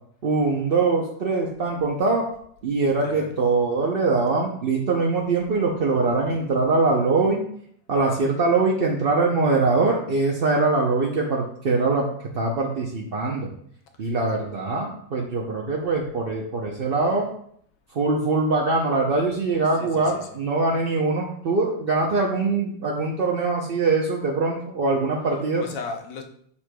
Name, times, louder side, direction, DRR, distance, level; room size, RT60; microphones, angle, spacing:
voice 1, 0.2-2.3 2.6-7.4 7.9-12.1 12.3-13.5 14.0-17.3 17.9-25.6, right 3 dB, 55° right, -1 dB, 0.6 m, -23 dB
voice 2, 3.0-3.3 6.0-6.5 14.0-14.1 19.7-20.4 25.6-26.2, left 5 dB, 80° left, 4 dB, 1.5 m, -36 dB
8.5 x 6.4 x 2.3 m, 0.65 s
omnidirectional pair, 1.9 m